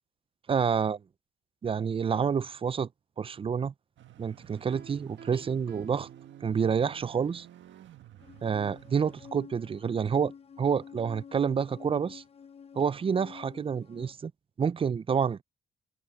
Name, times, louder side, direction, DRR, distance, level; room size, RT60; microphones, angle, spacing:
voice 1, 0.5-1.0 1.6-2.9 3.2-3.7 4.2-6.1 6.4-7.5 8.4-10.3 10.6-12.2 12.8-14.3 14.6-15.4, right 6 dB, 30° right, 0.4 m, -28 dB
sound 1, 4.0-9.3, right 13 dB, 70° right, 1.5 m, -52 dB
Piano, 4.7-7.0, right 7 dB, 55° right, 1.9 m, -51 dB
sound 2, 8.2-14.1, left 6 dB, 30° left, 0.6 m, -49 dB
open air
cardioid pair, 90°, 20 cm